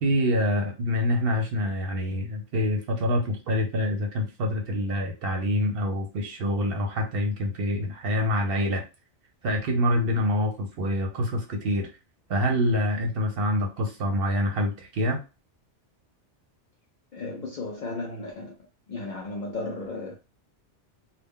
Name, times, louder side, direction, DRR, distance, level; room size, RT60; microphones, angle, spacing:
voice 1, 0.0-8.8 9.4-11.9 12.3-15.2, left 1 dB, 60° right, 0.8 m, -26 dB
voice 2, 17.1-18.5 18.9-20.2, left 3 dB, 60° left, 0.5 m, -34 dB
2.2 x 2.2 x 3.5 m
omnidirectional pair, 1.2 m